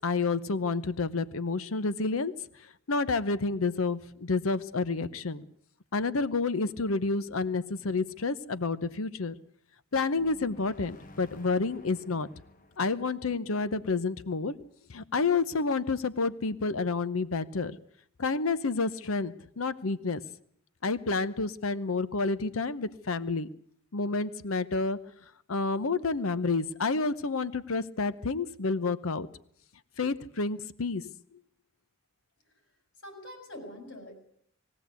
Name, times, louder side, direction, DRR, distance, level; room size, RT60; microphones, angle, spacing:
voice 1, 0.0-5.5 5.9-9.3 9.9-12.3 12.8-14.6 14.9-17.8 18.2-20.2 20.8-23.5 23.9-25.0 25.5-29.3 30.0-31.1, left 3 dB, 90° left, 15 dB, 0.8 m, -29 dB
sound 1, 10.1-14.8, left 1 dB, 40° left, 1.5 m, -54 dB
voice 2, 33.0-34.1, left 1 dB, 65° left, 4 dB, 6.2 m, -44 dB
21.0 x 16.0 x 8.2 m, 0.66 s
head